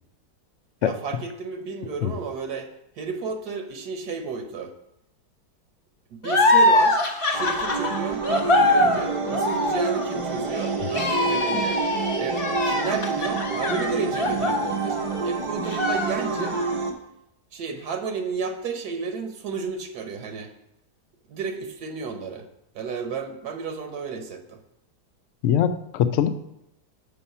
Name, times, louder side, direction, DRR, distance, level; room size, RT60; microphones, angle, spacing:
voice 1, 0.8-2.7 3.0-4.7 6.1-7.1 7.3-11.8 12.2-15.0 15.2-16.6 17.5-20.5 21.3-22.4 22.7-24.6, right 5 dB, 75° right, 6 dB, 1.4 m, -32 dB
sound 1, 6.2-15.3 15.7-16.7, left 2 dB, 40° left, 1.2 m, -23 dB
sound 2, 7.3-16.9, right 4 dB, 35° right, 0.5 m, -28 dB
voice 2, 25.4-26.3, left 9 dB, 65° left, 10 dB, 0.8 m, -22 dB
7.1 x 5.5 x 5.4 m, 0.81 s
omnidirectional pair, 1.7 m